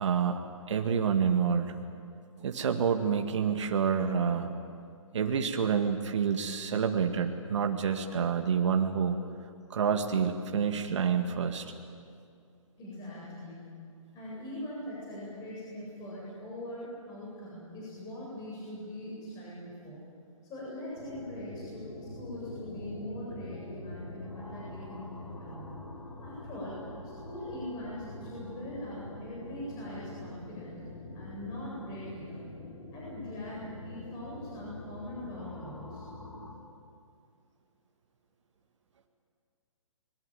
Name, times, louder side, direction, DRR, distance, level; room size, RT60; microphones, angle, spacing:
voice 1, 0.0-1.7 2.4-4.5 5.1-9.2 9.7-11.7, right 7 dB, 60° right, 5 dB, 1.9 m, -28 dB
voice 2, 12.8-13.7 14.1-20.0 20.4-25.7 26.2-26.8 27.0-30.9 31.1-32.5 32.9-36.0, left 1 dB, 20° left, -6 dB, 8.0 m, -42 dB
sound 1, 21.0-36.5, left 2 dB, 80° left, 4.0 m, -45 dB
25.5 x 22.0 x 9.2 m, 2.3 s
figure-of-eight pair, 140°, 17 cm